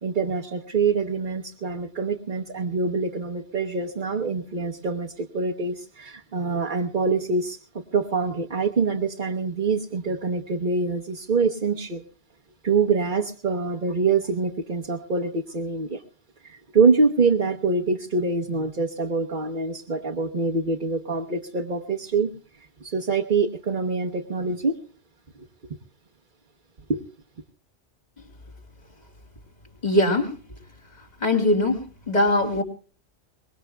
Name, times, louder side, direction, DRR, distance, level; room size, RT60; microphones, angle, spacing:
voice 1, 0.0-12.0 12.6-16.0 16.4-22.3 22.8-24.8 26.9-27.0, right 4 dB, 45° right, 1.2 m, -25 dB
voice 2, 29.8-30.4 31.2-32.6, left 1 dB, 35° left, 3.1 m, -21 dB
24.0 x 21.0 x 2.2 m
omnidirectional pair, 1.2 m